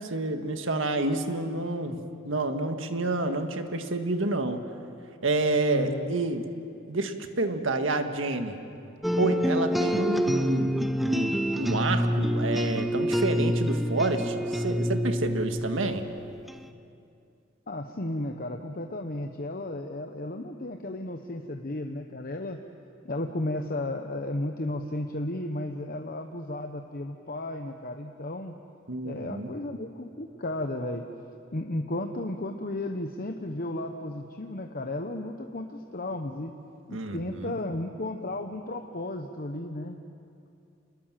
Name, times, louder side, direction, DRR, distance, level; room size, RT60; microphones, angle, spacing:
voice 1, 0.0-4.7 5.2-6.5 6.9-8.6 9.2-16.0 28.9-29.5 36.9-37.5, right 2 dB, 80° right, 6 dB, 1.7 m, -29 dB
voice 2, 5.7-6.1 17.7-22.6 23.0-28.5 29.0-31.0 31.5-36.5 36.9-40.0, left 1 dB, 45° left, 4 dB, 1.0 m, -34 dB
sound 1, 9.0-16.6, equal, ahead, 0.7 m, -27 dB
28.0 x 21.0 x 7.5 m, 2.5 s
head